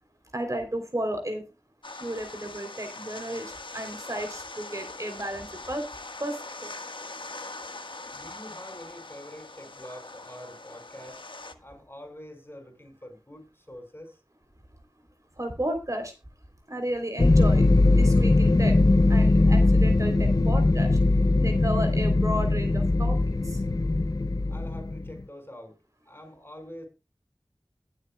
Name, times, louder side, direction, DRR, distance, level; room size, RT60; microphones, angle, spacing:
voice 1, 0.3-1.4 2.0-5.8 6.2-6.7 15.4-16.1 16.7-18.7 19.1-20.9 21.4-23.2 23.4-23.6, right 1 dB, 35° right, 3.4 m, -33 dB
sound 1, 1.8-11.5, left 2 dB, 65° left, 1.5 m, -42 dB
voice 2, 8.1-11.2 11.6-14.2 24.5-25.8 26.1-26.9, left 1 dB, 25° left, 5.5 m, -45 dB
sound 2, 17.2-25.1, left 2 dB, 45° left, 0.6 m, -21 dB
21.5 x 7.6 x 2.3 m
wide cardioid pair, 45°, 9 cm